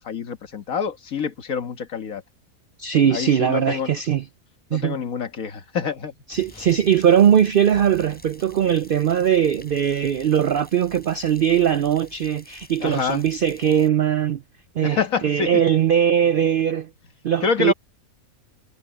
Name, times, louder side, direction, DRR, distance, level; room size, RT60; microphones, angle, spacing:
voice 1, 0.0-2.2 3.1-4.0 4.7-6.1 12.8-13.2 14.8-15.6 17.4-17.7, left 6 dB, 65° left, 1.9 m, -26 dB
voice 2, 2.8-4.2 4.7-5.0 6.3-14.4 14.8-16.9 17.2-17.7, right 9 dB, 80° right, 0.4 m, -20 dB
sound 1, 6.3-13.9, equal, 5° left, 7.9 m, -48 dB
omnidirectional pair, 1.6 m